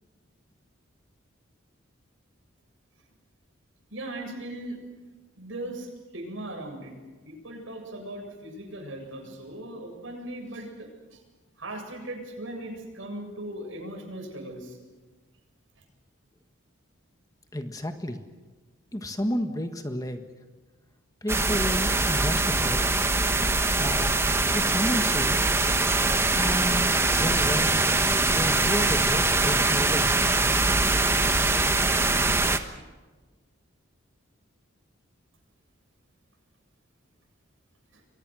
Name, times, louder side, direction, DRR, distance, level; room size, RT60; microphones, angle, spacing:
voice 1, 3.9-4.8 5.4-6.9 7.2-11.2 11.6-14.8 37.9-38.0, right 1 dB, 70° right, 3 dB, 7.6 m, -38 dB
voice 2, 17.5-18.2 18.9-20.2 21.2-22.8 23.8-24.1 24.5-25.5 26.3-27.9 28.3-30.1, equal, 15° left, 6 dB, 1.5 m, -31 dB
sound 1, 21.3-32.6, right 2 dB, 10° right, 1.3 m, -23 dB
29.5 x 23.5 x 6.4 m, 1.3 s
head